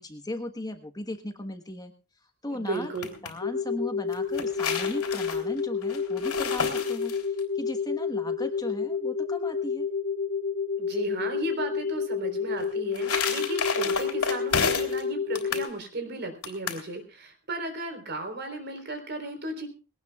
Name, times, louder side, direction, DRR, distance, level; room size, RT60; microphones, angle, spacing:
voice 1, 0.0-1.9 2.4-2.9 3.2-7.2 7.5-9.9, left 1 dB, 15° left, 7 dB, 1.3 m, -37 dB
voice 2, 2.5-3.2 10.8-19.7, right 2 dB, 50° right, 6 dB, 3.9 m, -35 dB
sound 1, 2.7-3.3 4.1-7.4 12.6-15.0 15.3-15.7 16.4-16.8, left 5 dB, 85° left, 3.5 m, -31 dB
sound 2, 3.4-15.7, left 5 dB, 70° left, 0.8 m, -30 dB
21.0 x 18.5 x 2.4 m, 0.32 s
head